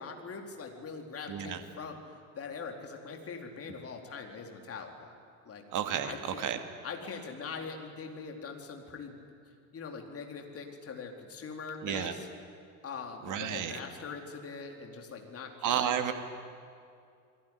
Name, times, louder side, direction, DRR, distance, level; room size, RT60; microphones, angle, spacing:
voice 1, 0.0-2.0 2.3-5.1 5.4-5.6 6.0-6.4 6.8-9.2 9.7-12.3 12.8-16.0, left 5 dB, 30° left, 3 dB, 4.2 m, -42 dB
voice 2, 1.3-1.6 5.7-6.6 11.8-12.1 13.3-13.7 15.6-16.1, right 9 dB, 45° right, 8 dB, 2.4 m, -31 dB
28.5 x 20.5 x 9.9 m, 2.4 s
figure-of-eight pair, 65°, 44 cm